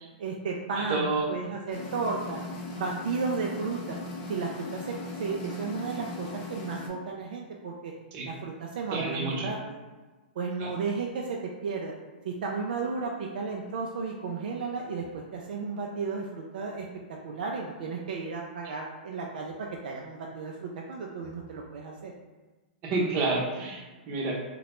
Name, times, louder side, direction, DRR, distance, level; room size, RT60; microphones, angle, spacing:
voice 1, 0.2-2.4 2.8-4.0 4.3-7.9 8.2-9.8 10.4-11.9 12.2-16.9 17.2-22.1, right 4 dB, 70° right, -1 dB, 0.3 m, -33 dB
voice 2, 0.8-1.2 8.1-8.3 8.9-9.5 10.6-10.7 22.8-24.4, right 3 dB, 40° right, -2 dB, 0.7 m, -29 dB
sound 1, 1.7-6.9, left 2 dB, 40° left, 0.5 m, -38 dB
2.8 x 2.1 x 3.0 m, 1.3 s
hypercardioid pair, 120°, 5 cm